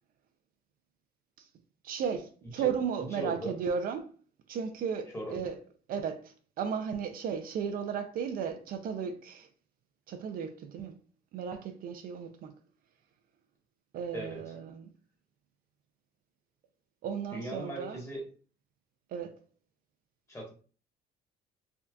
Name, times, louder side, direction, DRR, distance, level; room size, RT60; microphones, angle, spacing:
voice 1, 1.8-4.1 4.5-5.6 5.9-9.5 10.1-10.9 11.3-12.5 13.9-14.9 17.0-18.0 19.1-19.4, right 7 dB, 60° right, 0.4 m, -35 dB
voice 2, 3.1-3.5 5.1-5.4 14.1-14.4 17.3-18.2 20.3-20.5, right 1 dB, 15° left, 1.4 m, -38 dB
3.4 x 2.7 x 2.3 m
cardioid pair, 110°, 17 cm